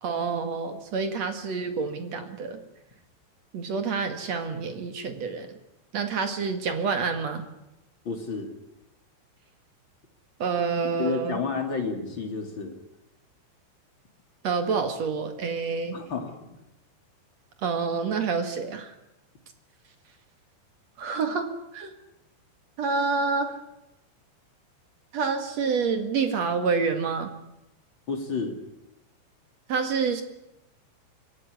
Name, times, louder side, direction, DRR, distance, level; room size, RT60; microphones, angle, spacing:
voice 1, 0.0-2.6 3.5-5.5 5.9-7.4 10.4-11.4 14.4-16.0 17.6-18.9 21.0-21.5 21.7-21.9 22.8-23.6 25.1-27.3 29.7-30.2, right 5 dB, 50° right, 7 dB, 2.1 m, -28 dB
voice 2, 8.0-8.5 11.0-12.8 15.9-16.4 28.1-28.6, left 4 dB, 30° left, 4 dB, 2.5 m, -30 dB
24.0 x 17.5 x 9.8 m, 0.90 s
omnidirectional pair, 5.6 m